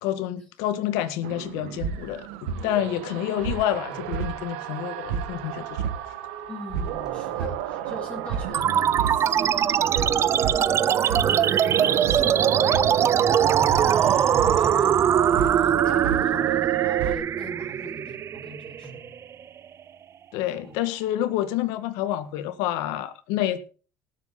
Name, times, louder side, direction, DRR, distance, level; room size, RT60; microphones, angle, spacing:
voice 1, 0.0-5.8 20.3-23.6, left 12 dB, 80° left, 11 dB, 1.7 m, -28 dB
sound 1, 1.2-17.2, right 9 dB, 90° right, 1.6 m, -30 dB
voice 2, 6.5-11.8 12.1-14.9 15.6-19.0 20.5-20.8, left 1 dB, 20° left, -1 dB, 6.3 m, -41 dB
sound 2, 7.0-7.8 10.1-10.8 12.9-13.7 15.9-16.6 18.8-19.6, right 1 dB, 10° right, 4.5 m, -51 dB
sound 3, 8.5-19.5, right 9 dB, 45° right, 0.7 m, -22 dB
18.5 x 8.3 x 4.0 m, 0.37 s
supercardioid pair, 85°, 6 cm